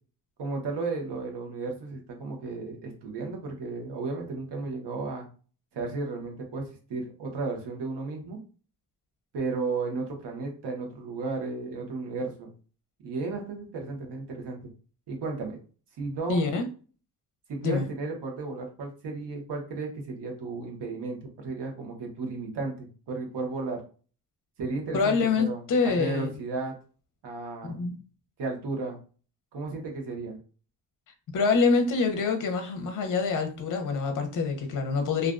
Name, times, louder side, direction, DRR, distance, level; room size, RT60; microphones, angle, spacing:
voice 1, 0.4-5.2 5.7-8.4 9.3-12.5 13.0-14.6 15.1-15.6 16.0-16.5 17.5-23.8 24.6-26.7 27.2-27.9 28.4-29.0 29.5-30.4, right 3 dB, 80° right, 0.9 m, -34 dB
voice 2, 16.3-16.7 17.6-17.9 24.9-26.3 27.7-28.0 31.3-35.3, left 4 dB, 50° left, 0.6 m, -26 dB
2.4 x 2.1 x 2.3 m
wide cardioid pair, 130°, 41 cm